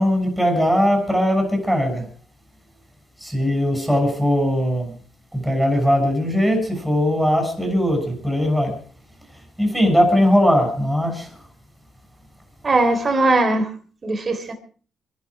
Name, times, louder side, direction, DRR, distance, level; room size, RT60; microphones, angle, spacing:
voice 1, 0.0-2.0 3.2-4.9 5.3-8.7 9.6-11.3, equal, 5° right, 6.4 m, -19 dB
voice 2, 12.6-13.7 14.0-14.5, right 2 dB, 35° right, 3.7 m, -19 dB
24.5 x 12.0 x 4.8 m
cardioid pair, 90°, 0 cm